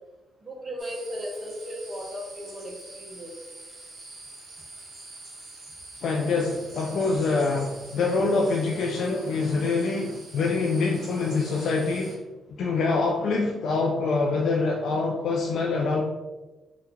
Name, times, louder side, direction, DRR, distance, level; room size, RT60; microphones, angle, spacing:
voice 1, 0.4-3.4, equal, 25° right, 0 dB, 0.7 m, -36 dB
sound 1, 0.8-12.2, right 2 dB, 55° right, 1.1 m, -46 dB
voice 2, 6.0-12.2 12.6-16.0, left 3 dB, 65° left, 0 dB, 0.3 m, -25 dB
2.8 x 2.4 x 3.5 m, 1.2 s
cardioid pair, 90°, 0 cm